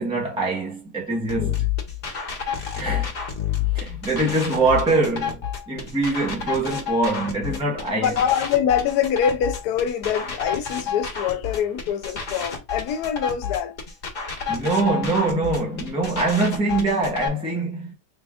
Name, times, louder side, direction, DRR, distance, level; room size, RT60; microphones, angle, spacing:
voice 1, 0.0-1.7 2.7-3.1 3.7-8.1 14.5-17.9, right 2 dB, 5° right, 0.5 m, -23 dB
sound 1, 1.3-17.3, left 8 dB, 40° left, 1.1 m, -29 dB
voice 2, 7.9-13.7, left 8 dB, 75° left, 1.2 m, -24 dB
3.7 x 2.3 x 3.5 m
omnidirectional pair, 1.7 m